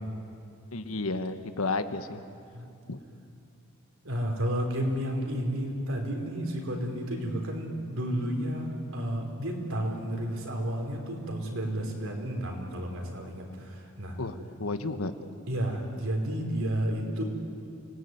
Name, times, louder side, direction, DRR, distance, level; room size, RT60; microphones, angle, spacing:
voice 1, 0.7-2.2 2.9-3.0 14.2-15.1, left 3 dB, 75° left, 9 dB, 1.3 m, -32 dB
voice 2, 4.0-14.1 15.5-17.2, equal, 65° right, 2 dB, 4.4 m, -31 dB
29.0 x 19.0 x 9.6 m, 2.5 s
head